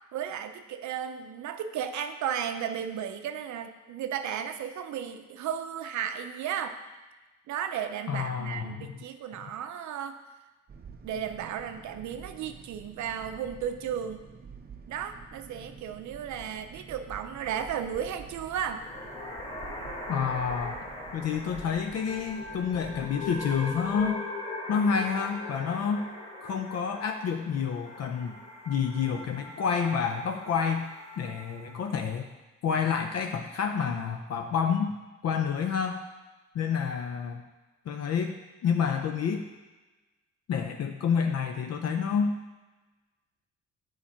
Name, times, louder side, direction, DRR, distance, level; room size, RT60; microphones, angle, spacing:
voice 1, 0.1-6.8 7.5-10.2 11.0-14.2 14.9-18.9, right 8 dB, 70° right, 8 dB, 0.6 m, -34 dB
voice 2, 8.1-8.9 20.1-20.8 21.1-24.2 24.7-26.1 26.4-28.4 28.7-30.8 31.2-32.3 32.6-34.9 35.2-36.0 36.5-37.4 37.9-38.3 38.6-39.5 40.5-42.4, left 6 dB, 55° left, 5 dB, 0.6 m, -29 dB
sound 1, 10.7-24.1, right 5 dB, 30° right, 0.6 m, -48 dB
sound 2, 18.5-31.9, left 2 dB, 20° left, 1.4 m, -40 dB
7.1 x 4.7 x 4.4 m, 1.2 s
cardioid pair, 90°, 30 cm